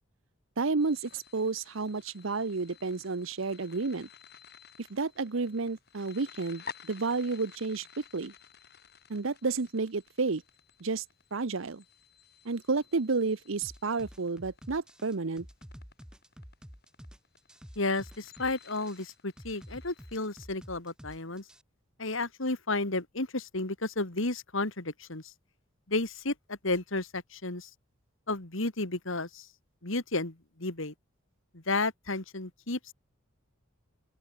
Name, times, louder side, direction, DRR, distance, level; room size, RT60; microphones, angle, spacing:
voice 1, 0.6-4.1 4.9-7.9 8.1-8.3 9.1-10.4 10.8-11.0 11.3-11.8 12.4-15.5, right 4 dB, 70° right, 0.8 m, -31 dB
sound 1, 0.8-20.5, left 6 dB, 50° left, 5.3 m, -53 dB
sound 2, 13.6-21.6, equal, 5° right, 2.6 m, -49 dB
voice 2, 17.8-21.4 22.0-25.3 25.9-27.7 28.3-29.5 29.8-30.9 31.5-32.9, left 2 dB, 65° left, 2.6 m, -32 dB
open air
head